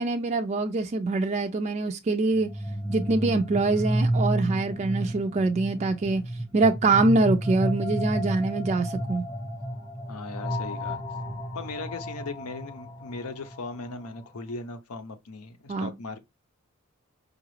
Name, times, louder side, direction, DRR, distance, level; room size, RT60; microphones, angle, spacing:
voice 1, 0.0-2.5 2.9-6.2 6.5-9.2 15.7-15.9, right 3 dB, 30° right, 0.3 m, -24 dB
sound 1, 2.3-14.2, right 1 dB, 15° left, 0.9 m, -31 dB
voice 2, 10.1-11.0 11.5-16.2, left 3 dB, 80° left, 0.7 m, -38 dB
5.0 x 2.4 x 3.1 m
head